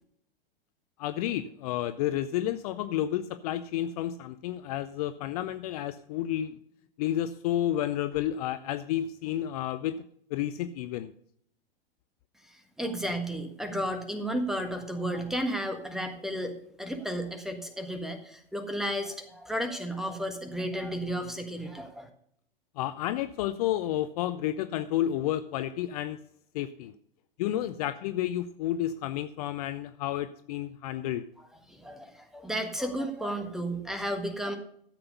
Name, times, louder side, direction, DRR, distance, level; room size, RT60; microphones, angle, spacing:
voice 1, 1.0-6.6 7.0-10.0 10.3-11.1 22.8-26.2 26.5-26.9 27.4-31.3, left 12 dB, 40° left, 12 dB, 0.6 m, -31 dB
voice 2, 12.5-22.1 31.7-34.6, equal, ahead, 6 dB, 1.5 m, -33 dB
13.0 x 7.7 x 5.3 m, 0.69 s
figure-of-eight pair, 100°, 29 cm